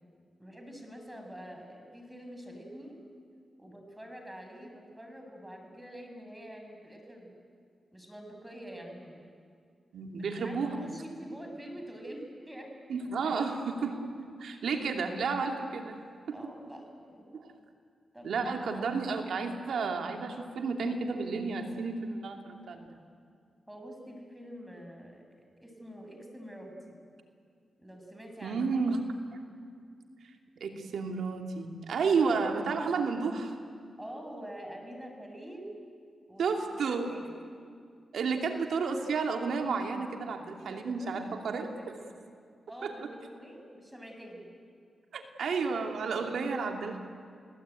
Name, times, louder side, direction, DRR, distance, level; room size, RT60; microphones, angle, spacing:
voice 1, 0.4-3.0 3.6-7.4 7.9-9.3 10.3-12.9 16.3-17.3 18.1-18.8 23.7-25.2 25.6-27.0 27.8-28.6 32.2-32.4 34.0-35.8 36.3-37.4 40.7-42.2 42.7-44.5, equal, 10° right, 3 dB, 6.6 m, -46 dB
voice 2, 9.9-10.8 12.9-14.0 14.4-16.0 16.3-16.4 17.3-17.5 18.2-23.0 28.4-29.0 30.6-33.5 36.4-37.1 38.1-41.7 42.8-42.9 45.1-47.0, right 4 dB, 80° right, 4 dB, 2.7 m, -31 dB
29.5 x 18.0 x 9.2 m, 2.2 s
cardioid pair, 55°, 0 cm